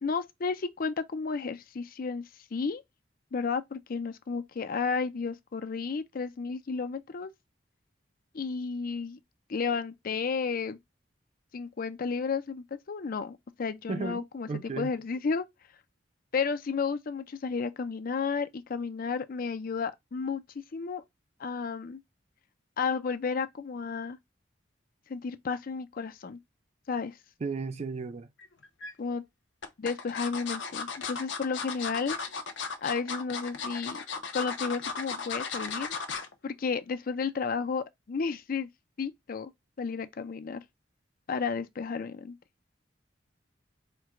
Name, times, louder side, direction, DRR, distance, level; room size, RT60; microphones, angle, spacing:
voice 1, 0.0-2.2 2.5-2.8 3.3-7.3 8.3-9.2 9.5-10.8 11.5-15.5 16.3-20.4 20.7-21.0 21.4-22.0 22.8-24.2 25.1-26.4 26.9-27.2 29.0-29.2 29.8-32.2 32.8-34.0 34.3-35.9 36.4-38.7 39.0-39.5 39.8-40.6 41.3-42.4, left 5 dB, 50° left, 0.5 m, -32 dB
voice 2, 13.9-14.9 27.4-28.3, right 4 dB, 35° right, 0.4 m, -34 dB
sound 1, 28.4-28.9 29.6-36.3 36.7-36.9 37.2-37.3, left 5 dB, 75° left, 0.8 m, -36 dB
4.5 x 2.2 x 3.7 m
head